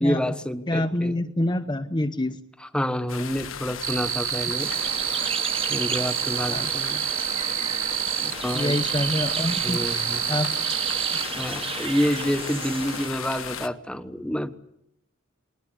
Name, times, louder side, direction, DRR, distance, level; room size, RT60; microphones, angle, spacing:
voice 1, 0.0-1.2 2.7-4.7 5.7-7.1 8.4-8.8 9.6-10.2 11.3-14.5, equal, 5° left, 10 dB, 1.2 m, -28 dB
voice 2, 0.7-2.4 6.5-6.7 8.2-10.5 11.1-11.2, left 1 dB, 20° left, 8 dB, 0.9 m, -27 dB
sound 1, 3.1-13.7, left 8 dB, 75° left, 1.4 m, -36 dB
sound 2, 3.8-11.2, right 13 dB, 85° right, 1.1 m, -28 dB
sound 3, 4.6-13.1, right 5 dB, 30° right, 1.5 m, -34 dB
21.5 x 20.0 x 9.9 m, 0.80 s
head